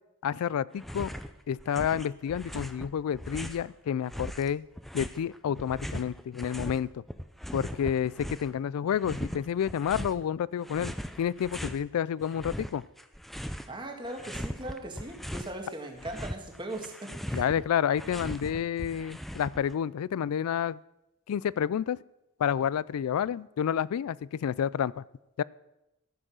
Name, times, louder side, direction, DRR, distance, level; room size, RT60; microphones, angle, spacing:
voice 1, 0.2-1.1 1.5-4.6 4.9-7.0 7.5-12.8 17.3-20.8 21.3-22.0 22.4-25.0 25.4-25.5, left 8 dB, 85° left, 21 dB, 0.3 m, -29 dB
sound 1, 0.8-1.3 1.6-3.7 4.1-6.8 7.1-8.6 9.0-10.2 10.6-11.8 12.2-13.8 14.0-15.5 15.9-19.7, equal, ahead, 0.4 m, -39 dB
voice 2, 13.7-17.5, right 1 dB, 20° right, 3 dB, 1.6 m, -39 dB
13.5 x 7.8 x 6.3 m, 0.91 s
head